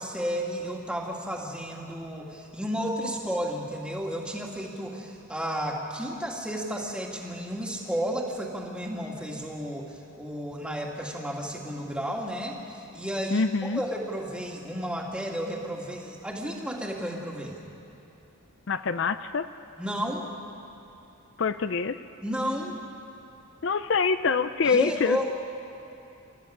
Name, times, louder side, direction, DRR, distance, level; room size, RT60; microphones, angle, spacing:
voice 1, 0.0-17.6 19.8-20.3 22.2-22.8 24.6-25.3, equal, 5° right, -1 dB, 2.2 m, -32 dB
voice 2, 13.3-13.8 18.7-19.5 21.4-22.0 23.6-25.2, left 5 dB, 55° left, 11 dB, 0.5 m, -25 dB
27.5 x 14.0 x 9.9 m, 2.8 s
head